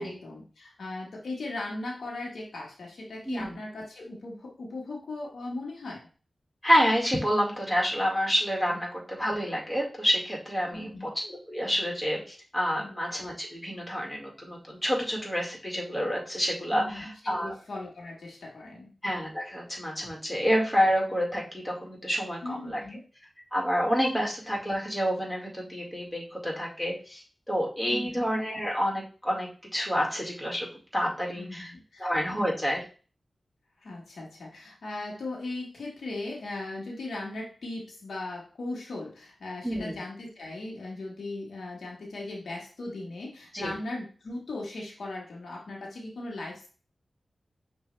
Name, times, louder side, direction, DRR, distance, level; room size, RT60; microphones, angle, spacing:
voice 1, 0.0-6.1 8.7-8.8 10.7-11.1 12.8-12.9 16.7-18.9 22.4-23.0 27.9-28.2 31.3-32.1 33.8-46.7, left 2 dB, 90° left, -2 dB, 1.3 m, -38 dB
voice 2, 6.6-17.6 19.0-22.8 23.5-30.7 30.9-31.7 32.0-32.8 39.6-40.0 43.5-43.7, equal, 10° left, -2 dB, 1.9 m, -28 dB
6.2 x 2.7 x 3.2 m, 0.37 s
cardioid pair, 55°, 0 cm